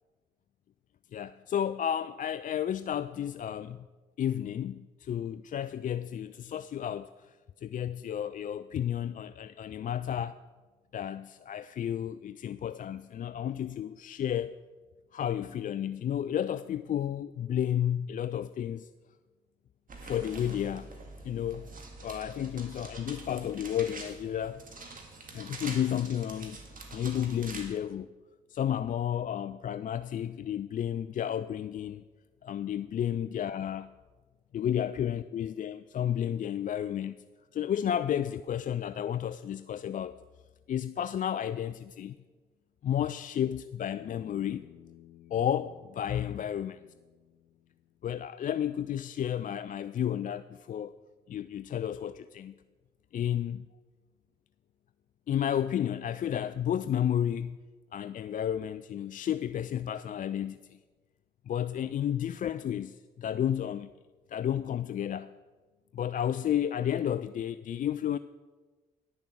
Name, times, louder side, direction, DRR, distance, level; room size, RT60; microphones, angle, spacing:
voice 1, 1.1-3.9 4.2-10.4 10.9-14.6 15.1-18.9 20.0-20.9 21.2-21.7 22.0-24.6 25.3-26.6 26.9-28.1 28.5-32.0 32.4-33.9 34.5-37.2 37.5-40.1 40.7-42.1 42.8-44.6 45.3-46.8 48.0-51.0 51.3-52.5 53.1-53.7 55.3-57.6 57.9-60.8 61.5-63.9 64.3-65.3 65.9-68.2, left 10 dB, 40° left, 0.4 m, -32 dB
sound 1, 19.9-27.7, right 3 dB, 40° right, 2.1 m, -45 dB
Bass guitar, 43.9-48.3, left 13 dB, 75° left, 0.7 m, -56 dB
9.9 x 6.8 x 6.3 m
hypercardioid pair, 45°, 21 cm